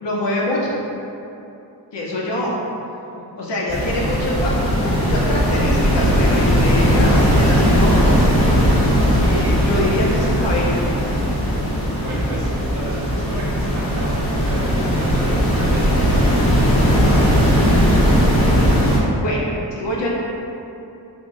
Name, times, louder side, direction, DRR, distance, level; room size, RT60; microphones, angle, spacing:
voice 1, 0.0-0.7 1.9-2.5 3.4-8.3 9.2-10.7 18.6-20.2, left 1 dB, 75° left, -4 dB, 0.8 m, -25 dB
voice 2, 3.2-3.5 12.0-16.4 17.2-17.3, right 1 dB, 45° right, -7 dB, 0.5 m, -31 dB
sound 1, 3.7-19.0, equal, 30° left, 1.0 m, -17 dB
3.5 x 2.1 x 3.9 m, 2.8 s
wide cardioid pair, 105°, 43 cm